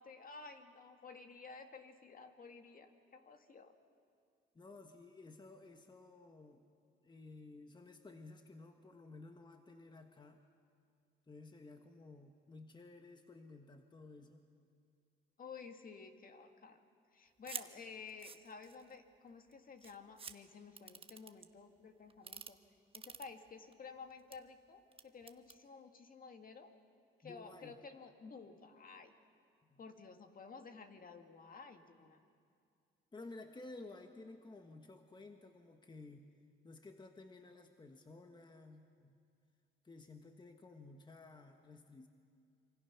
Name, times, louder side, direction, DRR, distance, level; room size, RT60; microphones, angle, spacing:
voice 1, 0.0-3.7 15.4-16.8 17.1-22.6 22.9-26.7 27.2-29.2 29.8-32.2, left 5 dB, 45° left, 6 dB, 1.9 m, -53 dB
voice 2, 4.5-6.7 7.0-10.4 11.3-14.5 27.2-27.8 29.7-29.8 33.1-36.3 36.6-39.2 39.8-42.1, left 3 dB, 20° left, 5 dB, 1.4 m, -54 dB
sound 1, 17.4-17.7 18.1-18.9 19.5-19.6 19.8-20.3 20.8-21.5 22.1-22.5 22.9-23.7 24.1-24.4 24.9-25.6, right 5 dB, 30° right, 1.0 m, -47 dB
26.0 x 24.5 x 5.9 m, 2.3 s
cardioid pair, 90°, 20 cm